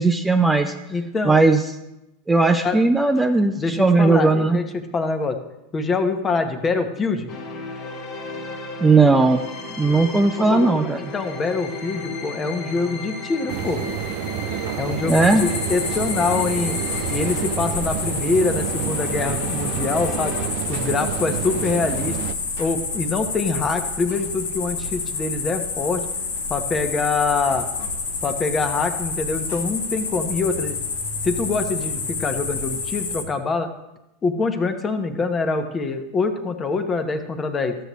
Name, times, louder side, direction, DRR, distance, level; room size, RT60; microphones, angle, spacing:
voice 1, 0.0-0.7 1.2-1.6 2.3-4.6 8.8-9.4 9.8-11.0 15.1-15.4, right 3 dB, 10° right, 5 dB, 0.5 m, -17 dB
voice 2, 0.9-1.4 2.6-2.8 3.6-5.4 5.7-7.3 10.5-13.8 14.8-16.8 17.1-20.3 20.7-22.2 22.6-26.1 26.5-27.7 28.2-30.8 31.2-33.7 34.2-37.8, left 4 dB, 25° left, 7 dB, 1.0 m, -24 dB
sound 1, 7.3-20.5, left 3 dB, 50° left, 1.5 m, -34 dB
sound 2, 13.5-22.3, right 14 dB, 60° right, 0.4 m, -29 dB
sound 3, 15.1-33.2, left 4 dB, 85° left, 1.2 m, -29 dB
13.0 x 6.7 x 3.1 m, 0.91 s
hypercardioid pair, 105°, 0 cm